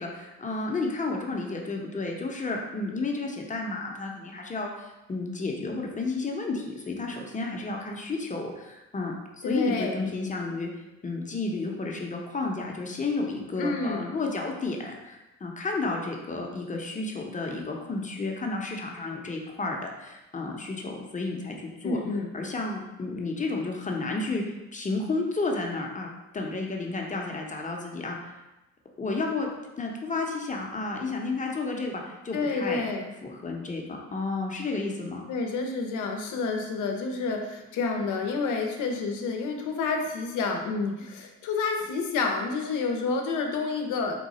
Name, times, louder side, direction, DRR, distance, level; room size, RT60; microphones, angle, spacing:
voice 1, 0.0-10.7 11.0-22.0 22.3-24.4 24.7-28.2 29.0-29.5 29.8-32.8 33.2-35.2, left 3 dB, 25° left, 0 dB, 0.7 m, -32 dB
voice 2, 9.4-10.2 13.6-14.1 21.8-22.3 32.3-33.1 35.3-44.2, left 4 dB, 85° left, 3 dB, 0.7 m, -29 dB
3.8 x 2.4 x 4.1 m, 1.0 s
cardioid pair, 90°, 30 cm